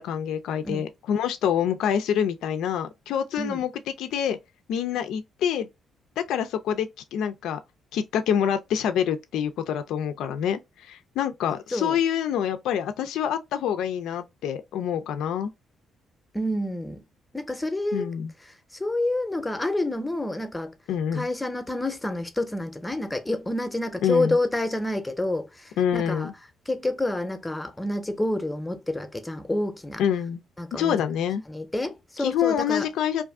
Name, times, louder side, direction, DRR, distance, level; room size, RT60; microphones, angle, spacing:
voice 1, 0.0-3.7 4.0-4.4 4.7-5.7 6.2-7.6 7.9-15.5 17.9-18.3 20.9-21.3 24.0-24.4 25.8-26.3 30.0-30.4 30.7-31.4 32.2-33.2, left 9 dB, 85° left, 0.3 m, -26 dB
voice 2, 16.3-17.0 17.3-18.1 18.5-20.7 21.1-26.3 26.7-30.0 30.6-31.0 31.5-32.9, left 1 dB, 10° left, 0.6 m, -28 dB
2.5 x 2.4 x 3.4 m
cardioid pair, 90°, 0 cm